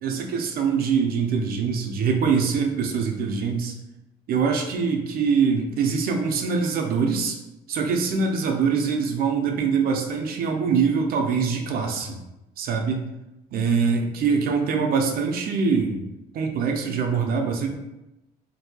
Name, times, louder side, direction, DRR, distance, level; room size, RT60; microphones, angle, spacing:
voice 1, 0.0-3.7 4.3-7.4 7.7-12.2 12.6-13.0 13.5-16.0 16.3-17.7, right 5 dB, 60° right, 3 dB, 0.5 m, -23 dB
4.0 x 2.6 x 2.2 m, 0.97 s
cardioid pair, 110°, 17 cm